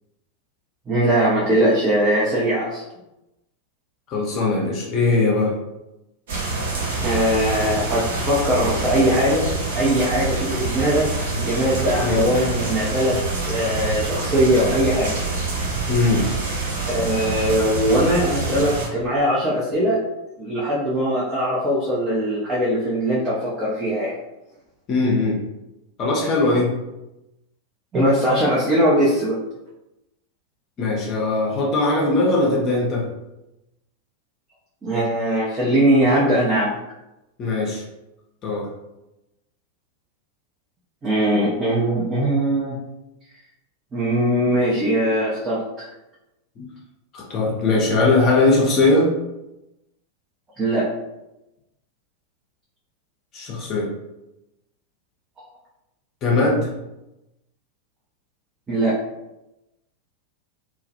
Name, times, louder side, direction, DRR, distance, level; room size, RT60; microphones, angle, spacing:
voice 1, 0.9-2.8 7.0-9.5 9.7-11.1 11.4-15.2 16.8-20.0 20.4-24.1 27.9-29.4 34.8-36.7 41.0-42.8 43.9-45.9 50.6-50.9 58.7-59.0, equal, 20° right, -7 dB, 0.5 m, -20 dB
voice 2, 4.1-5.5 12.0-12.3 15.9-16.3 24.9-25.4 26.0-26.7 30.8-33.0 37.4-37.8 38.4-38.7 46.6-46.7 47.1-49.1 53.3-53.9 56.2-56.7, left 2 dB, 35° left, -3 dB, 0.6 m, -20 dB
sound 1, 6.3-18.9, right 3 dB, 60° right, 0.7 m, -26 dB
2.3 x 2.0 x 2.6 m, 0.96 s
figure-of-eight pair, 90°, 0 cm